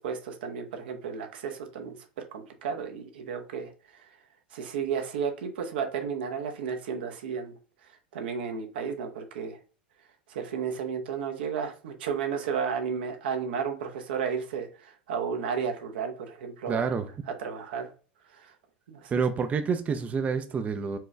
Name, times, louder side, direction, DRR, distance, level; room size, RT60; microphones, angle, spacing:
voice 1, 0.0-4.0 4.5-7.5 8.1-9.6 10.3-16.9 17.4-17.9 18.3-18.5 18.9-19.1, right 6 dB, 75° right, 0.7 m, -33 dB
voice 2, 16.7-17.1 19.1-21.0, right 5 dB, 25° right, 0.4 m, -28 dB
4.4 x 2.3 x 3.2 m
hypercardioid pair, 90°, 5 cm